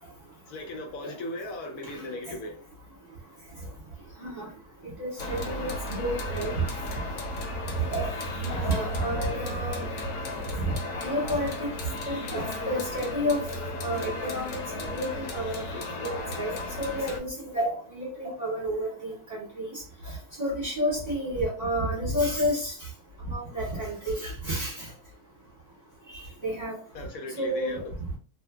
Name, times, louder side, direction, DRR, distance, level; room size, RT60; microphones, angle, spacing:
voice 1, 0.5-2.6 7.6-7.8 26.9-27.9, left 2 dB, 70° left, 0.9 m, -37 dB
voice 2, 4.8-6.6 7.9-8.1 8.4-9.9 10.7-10.8 11.0-11.7 12.1-13.4 13.8-15.6 16.0-19.8 20.4-22.7 23.2-24.9 26.4-26.7 27.4-27.8, equal, 35° right, 0.8 m, -30 dB
sound 1, 5.2-17.2, left 1 dB, 90° left, 1.2 m, -34 dB
2.6 x 2.4 x 2.3 m
omnidirectional pair, 1.6 m